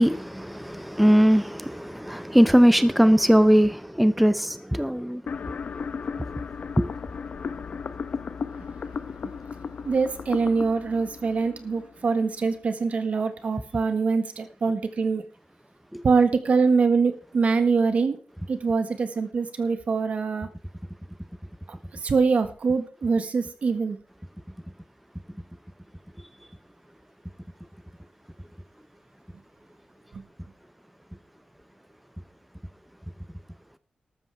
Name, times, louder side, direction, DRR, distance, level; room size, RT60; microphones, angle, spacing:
voice 1, 0.0-5.2 6.8-6.9 15.9-16.0, equal, ahead, 0.7 m, -20 dB
sound 1, 5.3-12.3, left 5 dB, 70° left, 0.9 m, -35 dB
voice 2, 9.8-15.2 16.0-18.2 18.5-20.5 21.9-24.0 30.1-30.2, right 4 dB, 65° right, 1.6 m, -24 dB
13.5 x 13.0 x 3.5 m
wide cardioid pair, 115°, 3 cm